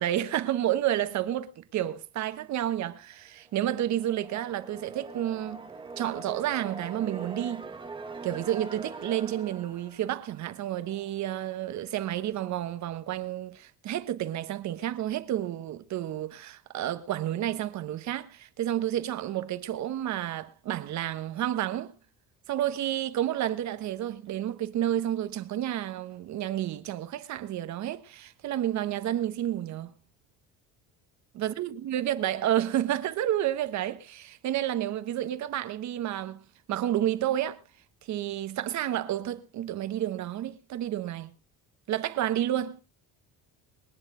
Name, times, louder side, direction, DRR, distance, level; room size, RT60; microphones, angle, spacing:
voice 1, 0.0-5.7 6.0-7.7 8.2-21.9 22.5-29.9 31.3-36.4 36.7-37.6 38.1-41.3 41.9-42.8, right 12 dB, 50° right, 1.2 m, -30 dB
sound 1, 3.4-11.1, right 3 dB, 15° right, 1.2 m, -43 dB
22.0 x 9.8 x 3.9 m
cardioid pair, 155°, 36 cm